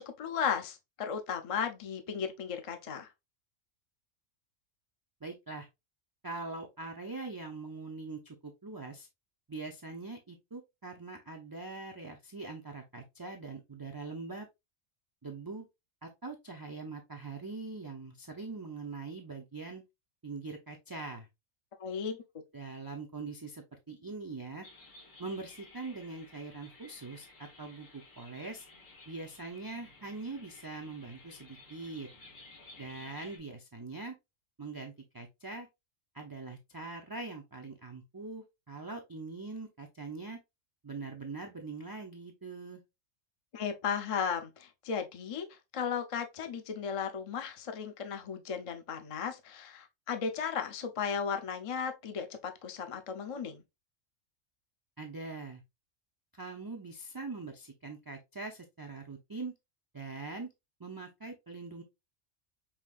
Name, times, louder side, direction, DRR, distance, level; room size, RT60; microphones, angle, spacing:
voice 1, 0.2-3.1 21.8-22.2 43.5-53.6, left 7 dB, 40° left, 0.5 m, -35 dB
voice 2, 5.2-5.7 6.2-9.1 9.5-14.5 15.2-15.7 16.0-19.8 20.2-21.3 22.5-24.7 25.2-28.7 29.1-32.1 32.8-34.1 34.6-35.7 36.1-40.4 40.8-42.8 55.0-55.6 56.3-59.5 59.9-60.5 60.8-61.8, right 3 dB, 35° right, 0.3 m, -42 dB
sound 1, 24.6-33.4, left 2 dB, 75° left, 2.2 m, -55 dB
5.6 x 2.8 x 2.3 m
omnidirectional pair, 1.3 m